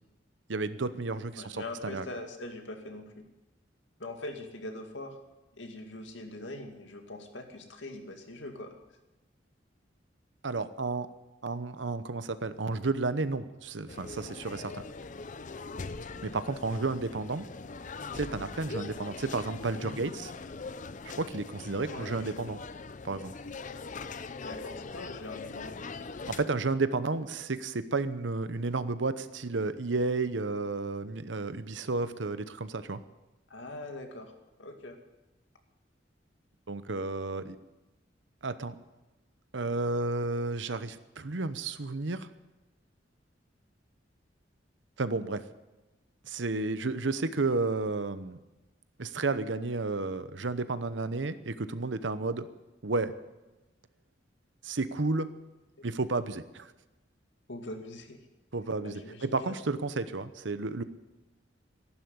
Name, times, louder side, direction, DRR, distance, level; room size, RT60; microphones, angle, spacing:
voice 1, 0.5-2.1 10.4-11.1 11.4-14.8 16.2-17.5 18.1-20.3 21.0-22.6 23.0-23.3 26.3-33.0 36.7-37.6 38.4-38.8 39.5-42.3 45.0-45.4 46.2-48.4 49.0-52.5 52.8-53.1 54.6-55.3 55.8-56.7 58.5-60.8, right 3 dB, 80° right, 13 dB, 0.9 m, -32 dB
voice 2, 1.3-3.2 4.0-5.2 5.6-8.8 21.9-22.1 24.4-25.7 33.5-34.3 34.6-35.0 57.5-58.2 58.8-59.6, left 2 dB, 85° left, 4 dB, 2.2 m, -42 dB
sound 1, 13.9-26.5, left 4 dB, 45° left, 0.6 m, -41 dB
14.5 x 11.5 x 8.1 m, 1.1 s
head